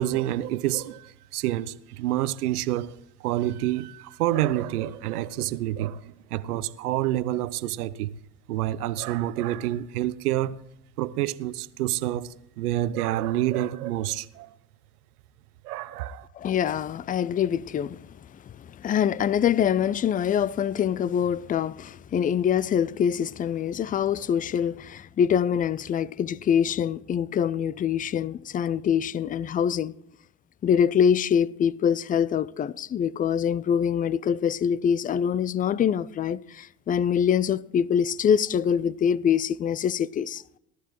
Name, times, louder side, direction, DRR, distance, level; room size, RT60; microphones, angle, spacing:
voice 1, 0.0-2.9 3.2-8.1 8.5-10.6 11.0-14.5 15.6-16.3, right 14 dB, 75° right, 0.8 m, -28 dB
voice 2, 16.4-18.0 18.6-29.9 30.6-40.4, left 8 dB, 20° left, 0.4 m, -24 dB
18.0 x 13.0 x 3.0 m
figure-of-eight pair, 65°, 46 cm